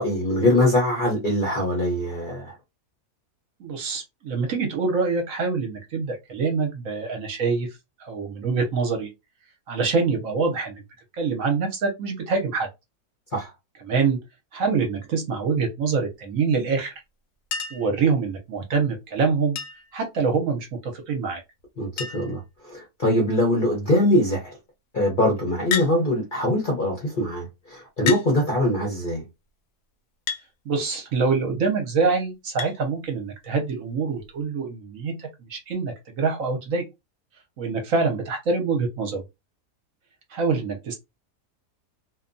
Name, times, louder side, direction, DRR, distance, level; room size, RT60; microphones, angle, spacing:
voice 1, 0.0-2.5 13.3-13.5 21.8-24.5 24.9-29.2, left 1 dB, 45° left, 0.7 m, -23 dB
voice 2, 3.6-7.7 8.0-9.1 9.7-10.8 11.2-12.7 13.9-14.2 14.5-16.9 17.7-19.6 19.9-21.4 30.7-36.8 37.6-39.2 40.3-40.9, right 4 dB, 65° right, 1.0 m, -25 dB
Chink clink, 17.5-18.0 19.6-20.0 21.3-21.4 21.6-21.7 22.0-22.4 23.2-23.6 25.7-26.0 27.0-27.1 28.1-28.3 30.3-30.5 32.6-32.8 34.2-34.3, left 7 dB, 75° left, 1.1 m, -30 dB
2.7 x 2.2 x 2.5 m
omnidirectional pair, 1.7 m